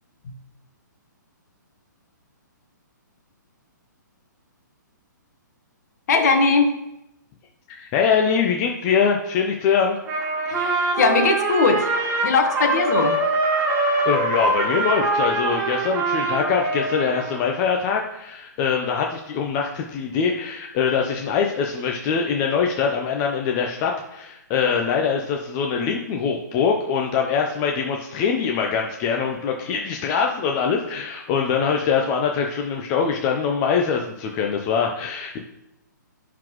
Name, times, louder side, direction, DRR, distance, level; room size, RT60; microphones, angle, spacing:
voice 1, 6.1-6.7 10.5-12.0 12.2-13.2, left 4 dB, 55° left, 5 dB, 1.4 m, -20 dB
voice 2, 7.7-10.0 14.1-35.4, left 6 dB, 30° left, 2 dB, 0.7 m, -23 dB
Trumpet, 10.1-17.4, right 2 dB, 20° right, 1.7 m, -23 dB
10.0 x 4.0 x 3.1 m, 0.86 s
hypercardioid pair, 140°, 10 cm